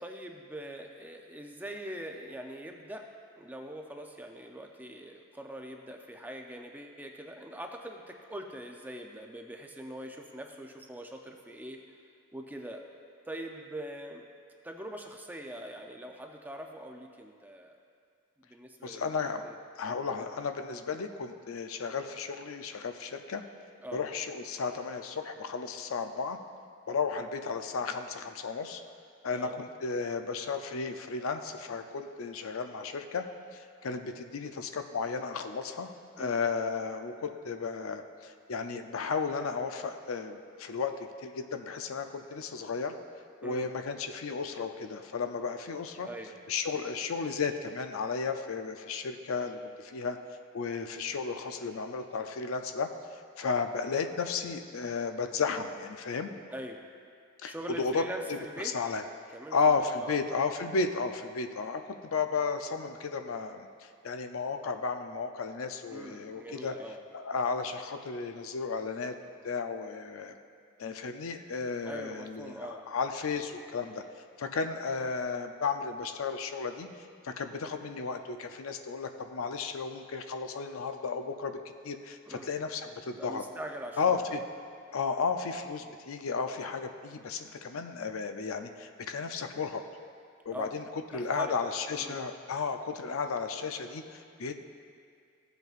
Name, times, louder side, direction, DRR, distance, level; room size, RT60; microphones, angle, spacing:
voice 1, 0.0-11.8 12.3-12.8 13.3-14.2 14.6-17.8 18.4-19.1 19.4-19.6 23.8-24.0 29.3-29.6 36.2-36.4 43.4-43.7 46.0-46.3 56.5-56.8 57.4-58.8 59.3-60.2 65.9-67.0 71.9-72.9 82.3-82.5 83.1-84.4 90.5-90.8 91.1-91.6 92.0-92.2, right 1 dB, 10° right, 3 dB, 0.5 m, -43 dB
voice 2, 18.8-19.4 19.8-23.4 23.9-26.4 26.9-28.8 29.2-33.2 33.5-35.9 36.2-40.9 41.2-43.0 43.4-46.1 46.5-50.2 50.5-52.9 53.4-56.3 57.4-58.4 58.6-59.0 59.5-66.7 67.1-69.2 69.4-70.3 70.8-74.0 74.4-76.9 77.2-81.6 81.8-83.4 84.0-84.4 84.9-89.8 90.5-94.5, left 5 dB, 75° left, 7 dB, 0.5 m, -33 dB
15.0 x 8.0 x 2.5 m, 2.3 s
head